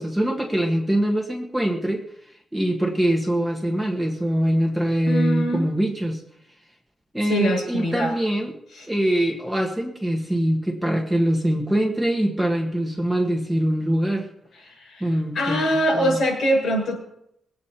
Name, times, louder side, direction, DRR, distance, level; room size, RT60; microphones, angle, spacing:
voice 1, 0.0-2.0 2.5-6.2 7.1-8.6 8.9-14.3 15.0-16.2, right 1 dB, 5° right, 0 dB, 1.5 m, -23 dB
voice 2, 5.0-5.6 7.3-8.1 8.8-8.9 14.7-15.1 15.3-17.0, equal, 65° left, 1 dB, 6.4 m, -23 dB
21.5 x 8.6 x 4.4 m, 0.77 s
wide cardioid pair, 155°, 0 cm